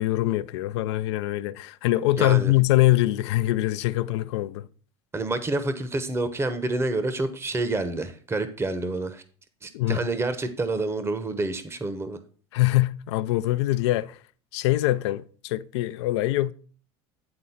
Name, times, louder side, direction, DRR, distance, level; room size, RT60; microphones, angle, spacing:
voice 1, 0.0-4.7 9.7-10.0 12.5-14.2 14.5-16.5, left 16 dB, 80° left, 0.5 m, -23 dB
voice 2, 2.2-2.5 5.1-9.2 9.6-12.2, right 2 dB, 15° right, 0.9 m, -28 dB
9.6 x 3.9 x 5.6 m
hypercardioid pair, 90°, 15 cm